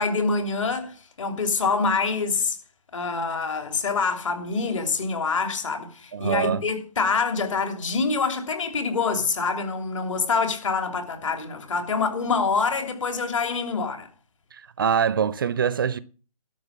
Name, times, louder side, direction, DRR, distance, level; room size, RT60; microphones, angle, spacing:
voice 1, 0.0-2.6 2.9-14.1, left 4 dB, 55° left, 3.0 m, -26 dB
voice 2, 6.1-6.6 14.5-16.0, right 7 dB, 35° right, 0.5 m, -24 dB
12.5 x 6.2 x 7.2 m
figure-of-eight pair, 150°, 19 cm